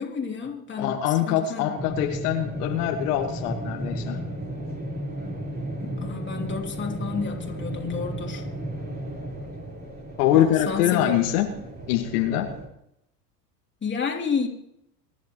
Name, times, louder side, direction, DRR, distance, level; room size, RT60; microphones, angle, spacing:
voice 1, 0.0-1.7 5.8-8.5 10.3-11.3 13.8-14.5, left 5 dB, 25° left, 1 dB, 3.1 m, -31 dB
voice 2, 0.8-4.2 10.2-11.5 11.9-12.5, left 11 dB, 70° left, 3 dB, 1.9 m, -23 dB
sound 1, 1.8-12.7, right 1 dB, 20° right, 4.5 m, -34 dB
24.0 x 11.0 x 3.1 m, 0.77 s
hypercardioid pair, 90°, 48 cm